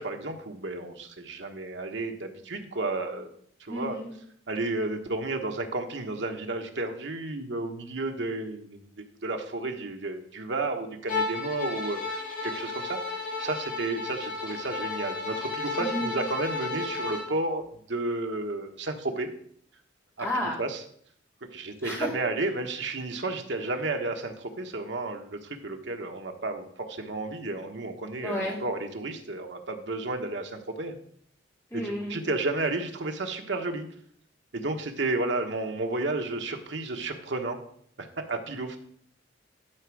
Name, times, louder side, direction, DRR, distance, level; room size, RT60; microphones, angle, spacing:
voice 1, 0.0-3.3 3.6-4.0 4.5-19.3 20.2-20.3 20.6-20.8 21.5-31.0 31.7-33.9 34.5-37.6 38.0-38.8, right 2 dB, 75° right, 4 dB, 1.1 m, -32 dB
voice 2, 3.7-4.1 15.8-16.2 20.2-20.6 21.8-22.1 28.2-28.6 31.7-32.2, left 1 dB, 15° left, -5 dB, 2.9 m, -31 dB
Bowed string instrument, 11.1-17.3, left 3 dB, 45° left, 2.0 m, -33 dB
12.0 x 5.1 x 4.7 m, 0.64 s
head